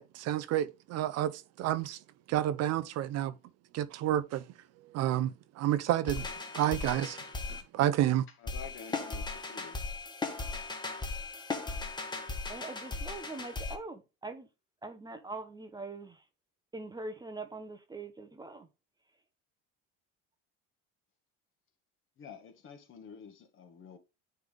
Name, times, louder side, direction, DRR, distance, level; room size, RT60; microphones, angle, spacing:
voice 1, 0.0-2.0 2.3-3.3 3.7-4.4 4.9-6.3 6.5-7.2 7.7-8.3, right 12 dB, 60° right, 0.7 m, -30 dB
sound 1, 6.1-7.6 8.5-13.8, left 3 dB, 15° left, 1.3 m, -37 dB
voice 2, 8.4-9.7 22.2-24.0, left 6 dB, 45° left, 1.8 m, -49 dB
voice 3, 12.5-14.5 14.8-16.2 16.7-18.7, right 3 dB, 15° right, 0.8 m, -43 dB
9.3 x 3.5 x 3.6 m
cardioid pair, 125°, 30 cm